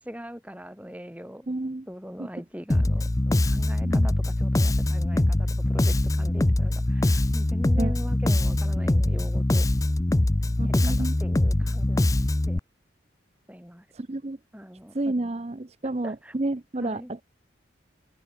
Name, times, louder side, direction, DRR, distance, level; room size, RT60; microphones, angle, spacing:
voice 1, 0.0-1.5 1.9-9.7 10.6-12.1 12.5-12.6 13.5-13.9 14.5-15.0 16.0-16.3 16.8-17.1, equal, 5° right, 5.7 m, -41 dB
voice 2, 1.5-1.9 2.2-2.3 3.8-4.1 7.8-7.9 10.6-11.1 13.9-14.4 14.9-17.2, right 2 dB, 35° right, 0.6 m, -30 dB
Bass guitar, 2.7-12.6, left 1 dB, 15° left, 0.4 m, -23 dB
head